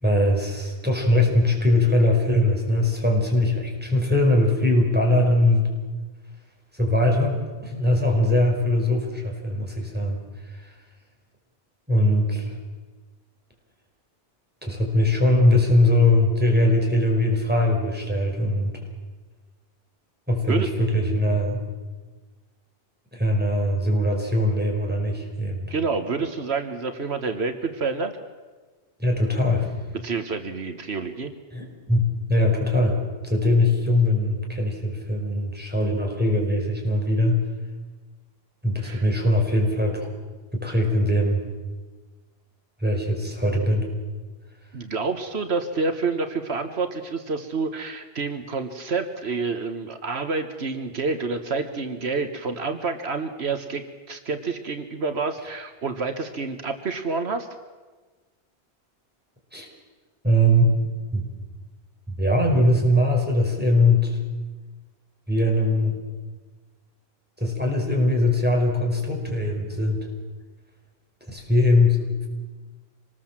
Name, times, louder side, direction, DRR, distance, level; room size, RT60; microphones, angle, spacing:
voice 1, 0.0-5.6 6.7-10.2 10.5-10.7 11.9-12.6 14.6-18.8 20.3-21.6 23.1-25.7 29.0-29.7 31.5-37.4 38.6-40.1 40.5-41.4 42.8-43.9 59.5-59.7 60.2-60.8 61.1-61.2 62.2-64.2 65.3-66.0 67.4-70.1 71.3-72.3, left 1 dB, 10° right, 0 dB, 5.2 m, -21 dB
voice 2, 25.7-28.1 30.0-31.3 38.8-39.0 44.7-57.5, right 4 dB, 85° right, 8 dB, 1.7 m, -28 dB
26.0 x 20.0 x 7.5 m, 1.3 s
omnidirectional pair, 1.1 m